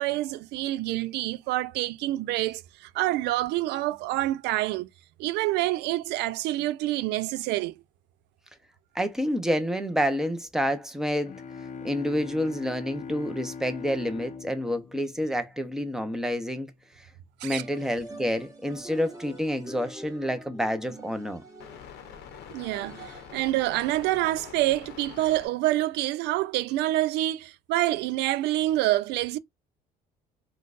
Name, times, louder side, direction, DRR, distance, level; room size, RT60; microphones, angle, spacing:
voice 1, 0.0-2.6 2.9-4.9 5.2-7.8 17.4-17.6 22.5-29.4, right 16 dB, 85° right, 0.4 m, -27 dB
voice 2, 8.9-11.3 11.8-16.7 17.4-21.4, equal, 5° right, 0.8 m, -28 dB
sound 1, 11.2-15.9, left 6 dB, 45° left, 0.6 m, -41 dB
sound 2, 17.5-23.6, right 1 dB, 20° right, 1.5 m, -46 dB
sound 3, 20.1-25.5, left 9 dB, 90° left, 0.8 m, -46 dB
3.8 x 2.4 x 2.5 m
cardioid pair, 110°, 17 cm